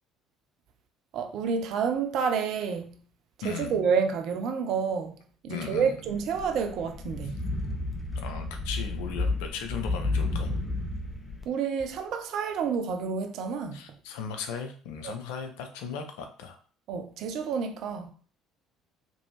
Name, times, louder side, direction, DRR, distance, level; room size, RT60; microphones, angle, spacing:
voice 1, 1.1-3.0 3.4-5.1 5.4-7.4 11.5-13.8 16.9-18.1, right 6 dB, 55° right, 0.5 m, -29 dB
voice 2, 3.4-3.8 5.5-5.9 7.2-7.3 8.2-10.5 13.7-16.6, left 6 dB, 65° left, 0.5 m, -37 dB
sound 1, 6.1-11.4, left 2 dB, 20° left, 0.8 m, -32 dB
3.0 x 2.6 x 3.0 m
figure-of-eight pair, 55°, 0 cm